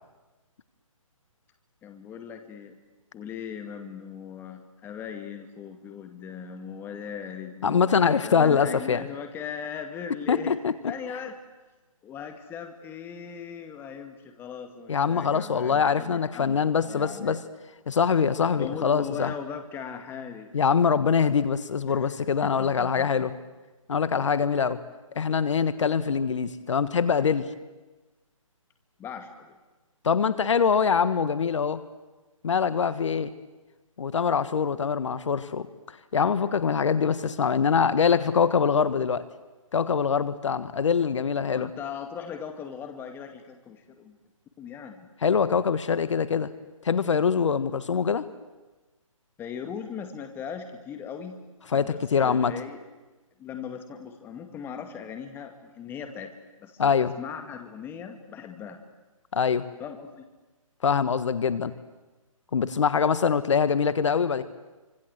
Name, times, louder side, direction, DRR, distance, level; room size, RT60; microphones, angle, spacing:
voice 1, 1.8-2.8 3.1-10.6 10.9-11.4 12.0-17.4 18.6-20.5 21.9-22.2 22.4-23.1 24.5-24.6 29.0-29.6 41.5-44.2 44.6-45.1 49.4-51.4 51.7-52.8 53.4-56.3 56.6-58.8 59.8-60.2, left 7 dB, 10° left, 7 dB, 2.1 m, -39 dB
voice 2, 7.6-9.0 10.3-10.7 14.9-17.4 17.9-19.3 20.5-23.3 23.9-24.8 25.1-27.5 30.0-31.8 32.4-33.3 34.0-35.7 36.1-39.2 39.7-41.7 45.2-46.5 46.8-48.2 51.7-52.5 56.8-57.1 59.3-59.7 60.8-61.7 62.5-64.4, left 6 dB, 60° left, 14 dB, 1.5 m, -24 dB
28.5 x 25.5 x 8.1 m, 1.2 s
hypercardioid pair, 150°, 18 cm